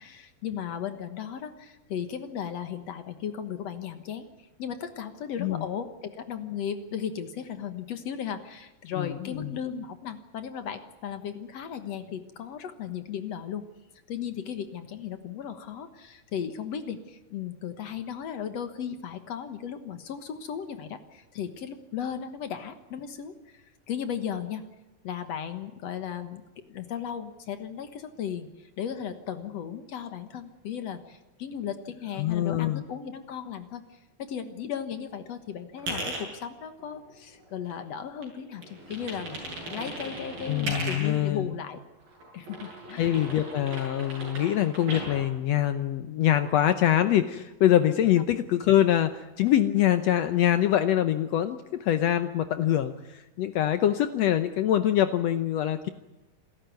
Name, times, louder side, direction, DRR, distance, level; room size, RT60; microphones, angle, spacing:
voice 1, 0.0-4.3 4.6-13.6 14.1-24.6 25.0-26.4 26.7-39.4 39.7-41.8 42.3-43.2, left 8 dB, 60° left, 9 dB, 2.0 m, -36 dB
voice 2, 9.0-9.6 32.2-32.8 40.5-41.5 43.0-55.9, left 11 dB, 90° left, 10 dB, 1.4 m, -24 dB
sound 1, 35.8-36.2 36.8-38.0 38.2-41.2 42.0-45.2, right 1 dB, 70° right, 9.3 m, -37 dB
27.5 x 13.5 x 9.4 m, 1.1 s
omnidirectional pair, 4.2 m